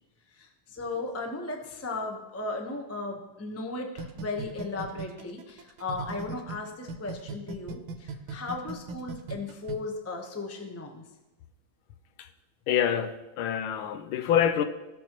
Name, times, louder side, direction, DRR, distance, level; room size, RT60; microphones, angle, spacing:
voice 1, 0.3-11.0, left 3 dB, 20° left, 2 dB, 0.4 m, -36 dB
sound 1, 4.0-6.6 6.9-9.7, right 4 dB, 75° right, 1.6 m, -37 dB
voice 2, 12.7-14.6, left 9 dB, 75° left, 9 dB, 1.3 m, -26 dB
18.0 x 6.3 x 3.0 m, 1.0 s
omnidirectional pair, 2.4 m